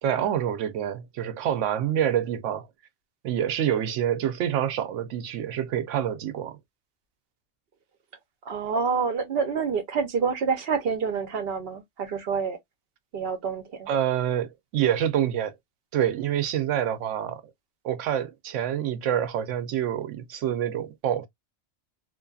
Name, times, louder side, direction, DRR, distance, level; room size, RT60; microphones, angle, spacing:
voice 1, 0.0-2.7 3.2-6.6 13.9-15.5 15.9-17.4 17.8-21.3, right 10 dB, 85° right, 0.9 m, -27 dB
voice 2, 8.5-12.6 13.1-13.9, right 5 dB, 60° right, 0.8 m, -27 dB
2.5 x 2.4 x 2.3 m
omnidirectional pair, 1.2 m